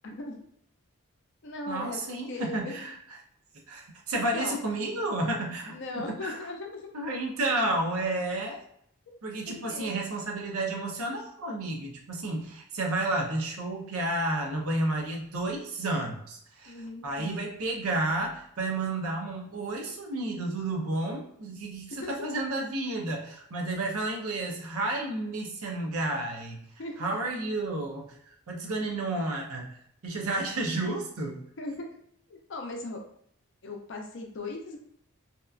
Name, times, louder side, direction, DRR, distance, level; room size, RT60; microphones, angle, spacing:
voice 1, 0.0-0.3 1.4-2.0 2.3-2.9 4.3-4.6 5.7-6.9 9.5-9.9 16.7-17.4 22.0-22.1 26.8-27.1 31.6-31.9 32.3-33.0 33.6-34.8, left 2 dB, 55° left, 2 dB, 0.5 m, -38 dB
voice 2, 1.7-3.0 3.7-6.4 6.9-8.6 9.2-26.6 27.0-29.8 30.0-31.4, right 2 dB, 85° right, 1 dB, 0.6 m, -31 dB
2.8 x 2.2 x 2.3 m, 0.70 s
head